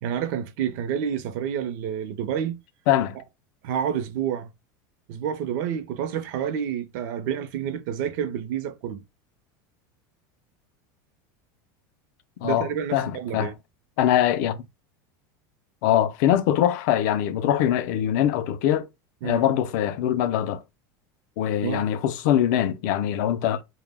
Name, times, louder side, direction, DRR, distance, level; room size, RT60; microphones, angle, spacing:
voice 1, 0.0-2.6 3.6-4.5 5.1-9.0 12.4-13.5 19.2-19.4 21.6-21.9, right 8 dB, 60° right, 0.5 m, -29 dB
voice 2, 2.9-3.2 12.4-13.5 14.0-14.6 15.8-18.9 19.2-20.6 21.4-23.6, left 11 dB, 65° left, 0.4 m, -23 dB
2.1 x 2.1 x 3.3 m
supercardioid pair, 150°, 11 cm